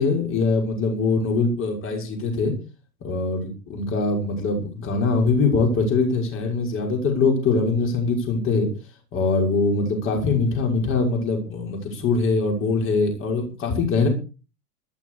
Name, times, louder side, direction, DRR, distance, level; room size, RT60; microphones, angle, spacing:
voice 1, 0.0-2.5 3.0-8.7 9.1-14.1, left 3 dB, 25° left, 2 dB, 6.0 m, -22 dB
14.0 x 13.5 x 4.9 m, 0.35 s
figure-of-eight pair, 100°, 47 cm